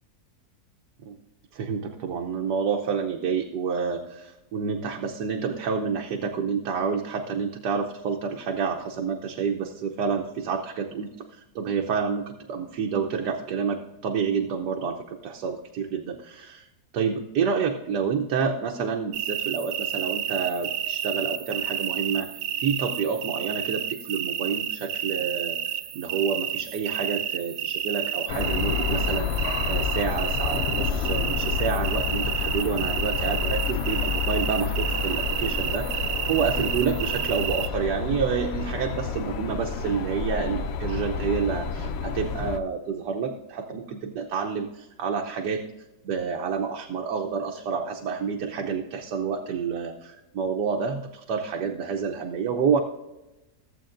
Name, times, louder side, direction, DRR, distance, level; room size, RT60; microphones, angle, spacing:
voice 1, 1.5-16.7 16.9-22.3 22.6-25.6 25.9-45.6 46.0-52.8, right 6 dB, 90° right, 2 dB, 1.4 m, -29 dB
sound 1, 19.1-37.7, right 9 dB, 70° right, 1.0 m, -30 dB
Port on sunday, 28.3-42.6, left 6 dB, 85° left, 0.5 m, -29 dB
15.0 x 7.9 x 2.5 m, 1.0 s
omnidirectional pair, 1.7 m